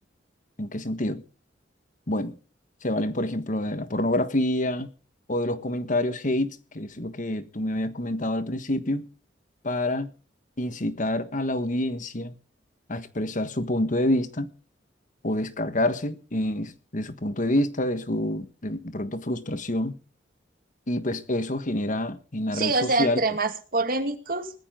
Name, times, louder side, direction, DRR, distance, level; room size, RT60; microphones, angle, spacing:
voice 1, 0.6-1.2 2.1-2.4 2.8-4.9 5.3-9.1 9.6-10.1 10.6-12.3 12.9-14.5 15.2-19.9 20.9-23.2, left 1 dB, 45° left, 1.4 m, -27 dB
voice 2, 22.5-24.5, right 3 dB, 50° right, 2.1 m, -25 dB
20.0 x 13.5 x 3.8 m
head